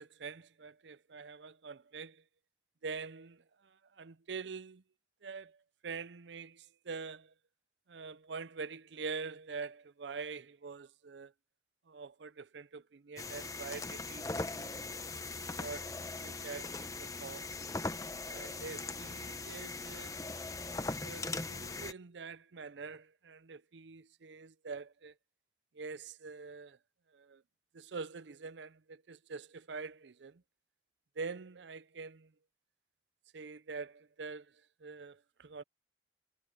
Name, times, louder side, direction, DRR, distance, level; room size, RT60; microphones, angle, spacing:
voice 1, 0.0-2.2 2.8-4.8 5.2-5.6 5.8-7.3 7.9-11.3 11.9-14.3 14.5-14.9 15.6-15.9 16.2-17.5 18.2-20.2 21.0-25.1 25.7-26.8 27.1-27.4 27.7-30.4 31.2-32.3 33.3-34.5 34.8-35.6, right 4 dB, 75° right, 0.6 m, -45 dB
sound 1, 13.2-21.9, left 3 dB, 20° left, 1.0 m, -40 dB
head